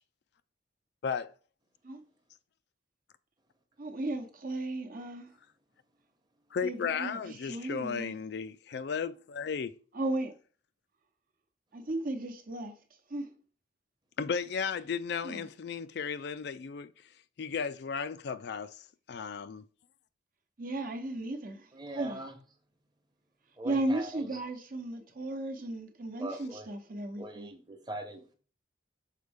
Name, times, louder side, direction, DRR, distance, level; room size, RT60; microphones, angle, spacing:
voice 1, 3.8-5.3 6.6-8.1 9.9-10.3 11.7-12.8 13.1-13.3 15.2-15.5 20.6-21.7 21.9-22.3 23.6-27.5, right 2 dB, 45° right, 0.9 m, -35 dB
voice 2, 6.5-9.8 14.2-16.9 17.4-18.8 19.1-19.6, left 6 dB, 55° left, 0.4 m, -34 dB
voice 3, 21.7-22.4 23.6-24.2 26.2-26.7 27.2-28.2, right 1 dB, 20° right, 1.0 m, -41 dB
6.5 x 4.3 x 3.5 m
head